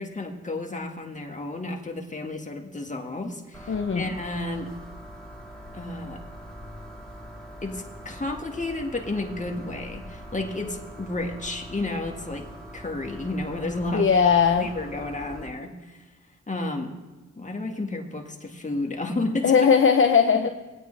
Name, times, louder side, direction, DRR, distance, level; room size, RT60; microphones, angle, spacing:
voice 1, 0.0-4.7 5.7-6.2 7.6-12.5 12.7-14.1 14.6-16.0 16.5-16.9 17.4-19.7 20.4-20.5, left 2 dB, 25° left, 2 dB, 1.8 m, -31 dB
sound 1, 3.5-15.5, equal, ahead, 3.2 m, -43 dB
voice 2, 3.7-4.1 13.9-14.7 19.4-20.5, left 6 dB, 45° left, 6 dB, 0.7 m, -19 dB
19.0 x 8.8 x 3.3 m, 1.2 s
cardioid pair, 50°, 30 cm